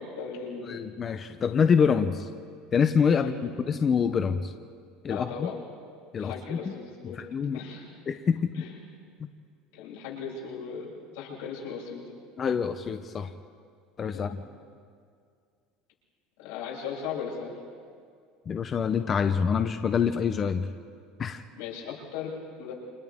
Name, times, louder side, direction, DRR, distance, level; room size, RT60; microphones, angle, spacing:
voice 1, 0.0-0.8 3.2-3.4 5.1-5.6 6.2-7.2 7.5-7.9 8.5-8.8 9.7-10.9 11.1-12.0 14.1-14.3 16.4-17.5 21.6-22.7, left 6 dB, 85° left, -4 dB, 7.0 m, -37 dB
voice 2, 0.7-2.3 2.7-3.3 3.7-4.5 5.0-5.5 6.1-6.7 7.0-7.6 8.1-8.5 12.4-13.3 14.0-14.4 18.5-20.7 21.2-21.4, left 6 dB, 20° left, 8 dB, 0.6 m, -26 dB
29.0 x 27.5 x 3.6 m, 2.2 s
cardioid pair, 175°, 0 cm